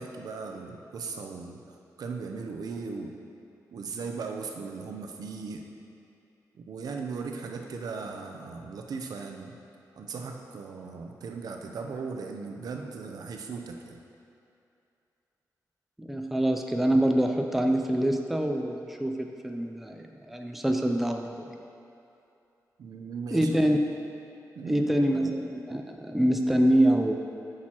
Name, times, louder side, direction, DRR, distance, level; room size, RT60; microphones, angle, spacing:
voice 1, 0.0-1.6 2.0-3.1 3.7-5.6 6.6-9.6 10.0-14.0 22.8-23.5 24.6-24.9, right 4 dB, 80° right, 3 dB, 0.6 m, -37 dB
voice 2, 16.0-21.5 23.3-23.8 24.6-27.1, right 1 dB, 5° right, 3 dB, 0.4 m, -25 dB
8.6 x 6.2 x 2.9 m, 2.7 s
wide cardioid pair, 135°, 6 cm